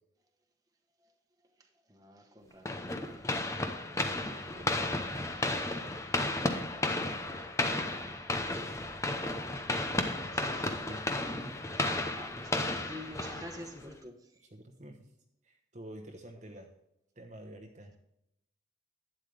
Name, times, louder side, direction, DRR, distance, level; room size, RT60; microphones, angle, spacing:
voice 1, 1.9-2.9 7.0-7.5 10.2-10.8 11.1-11.3 11.8-14.2, equal, 20° right, 2 dB, 1.2 m, -48 dB
sound 1, 2.7-13.9, left 2 dB, 15° left, 0.8 m, -33 dB
voice 2, 3.9-5.4 10.6-11.5 14.4-15.0 15.4-16.7 17.2-17.9, right 1 dB, 40° right, 2 dB, 1.0 m, -49 dB
12.0 x 9.3 x 3.4 m, 0.79 s
head